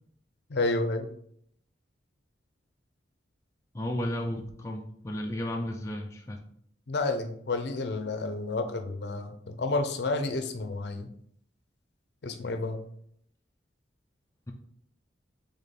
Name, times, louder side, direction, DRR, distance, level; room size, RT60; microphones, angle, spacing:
voice 1, 0.5-1.1 6.9-11.1 12.2-12.8, left 2 dB, 60° left, 7 dB, 0.6 m, -30 dB
voice 2, 3.7-6.4, left 1 dB, 15° left, 1 dB, 0.4 m, -33 dB
3.6 x 3.6 x 4.1 m, 0.65 s
head